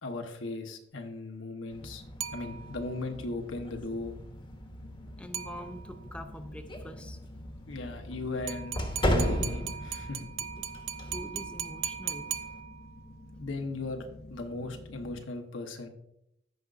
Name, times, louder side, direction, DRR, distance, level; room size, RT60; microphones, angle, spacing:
voice 1, 0.0-2.0 2.3-4.2 7.7-10.3 13.4-15.9, left 2 dB, 85° left, 4 dB, 1.0 m, -37 dB
sound 1, 1.7-15.2, left 1 dB, 55° left, 0.9 m, -50 dB
sound 2, 1.7-12.6, equal, 25° left, 1.1 m, -36 dB
sound 3, 2.2-3.0 5.3-6.1 8.5-13.1, right 9 dB, 80° right, 0.4 m, -39 dB
voice 2, 5.2-7.2 7.5-7.8 10.6-10.7 11.0-12.3, equal, 5° left, 5 dB, 0.5 m, -45 dB
14.5 x 5.2 x 2.5 m, 0.81 s
head